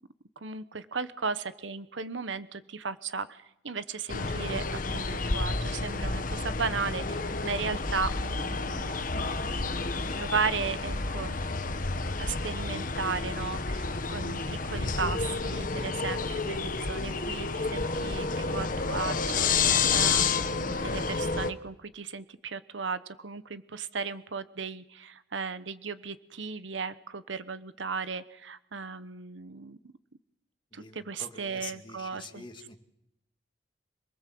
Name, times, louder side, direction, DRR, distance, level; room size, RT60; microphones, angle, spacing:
voice 1, 0.4-8.9 9.6-9.8 10.1-11.4 12.2-29.8 30.7-32.4, right 5 dB, 80° right, 13 dB, 1.0 m, -36 dB
sound 1, 4.1-21.5, left 4 dB, 45° left, 1.3 m, -30 dB
voice 2, 30.7-32.8, left 4 dB, 25° left, 5 dB, 2.2 m, -45 dB
26.5 x 20.0 x 7.7 m, 0.81 s
head